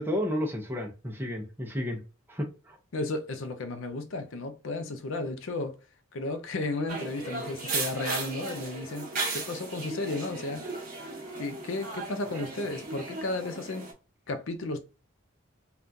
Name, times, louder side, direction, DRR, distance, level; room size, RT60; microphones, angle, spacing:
voice 1, 0.0-2.0 2.3-2.8, left 1 dB, 10° right, 0.6 m, -32 dB
voice 2, 2.9-5.8 6.1-10.7 11.3-13.9 14.3-14.8, left 2 dB, 65° left, 0.5 m, -33 dB
sound 1, 6.9-13.9, right 3 dB, 40° right, 1.0 m, -36 dB
3.5 x 2.4 x 2.6 m
head